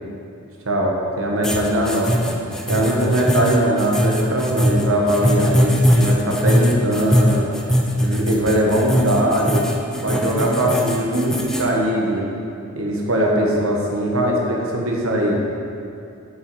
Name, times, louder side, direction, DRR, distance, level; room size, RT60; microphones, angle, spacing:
voice 1, 0.6-2.2 2.7-7.5 8.0-9.7 10.0-12.3 12.7-15.4, right 1 dB, 65° right, -1 dB, 1.2 m, -20 dB
sound 1, 1.4-11.7, equal, 5° left, 0.4 m, -20 dB
6.9 x 5.5 x 4.7 m, 2.5 s
head